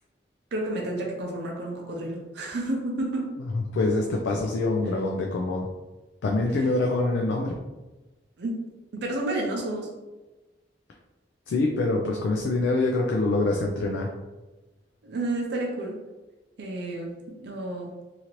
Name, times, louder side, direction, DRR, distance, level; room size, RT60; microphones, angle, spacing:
voice 1, 0.5-3.4 8.4-9.9 15.0-16.0 16.6-17.1 17.4-17.9, right 2 dB, 65° right, -1 dB, 0.5 m, -30 dB
voice 2, 3.7-5.7 6.2-7.5 11.5-14.1, left 2 dB, 75° left, 1 dB, 0.3 m, -25 dB
2.9 x 2.5 x 2.9 m, 1.2 s
head